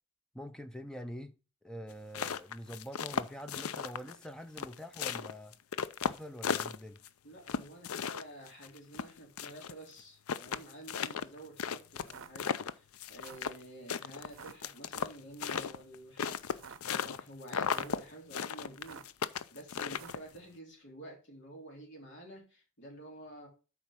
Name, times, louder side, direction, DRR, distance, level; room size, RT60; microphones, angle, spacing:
voice 1, 0.3-1.3 1.6-5.6 6.0-7.0, equal, 5° left, 0.5 m, -45 dB
sound 1, 1.9-4.3 4.6-7.1 7.5-9.7 10.0-10.1 10.3-13.6 13.9-17.2 17.5-18.0 18.3-20.4, left 7 dB, 75° left, 0.5 m, -35 dB
voice 2, 7.2-23.5, right 1 dB, 55° left, 3.4 m, -50 dB
sound 2, 12.0-12.3 13.1-13.5 14.2-14.5 15.4-15.8 16.4-16.8 17.6-18.0 18.7-19.2 19.9-20.3, right 6 dB, 65° right, 0.7 m, -51 dB
7.7 x 4.9 x 5.6 m
head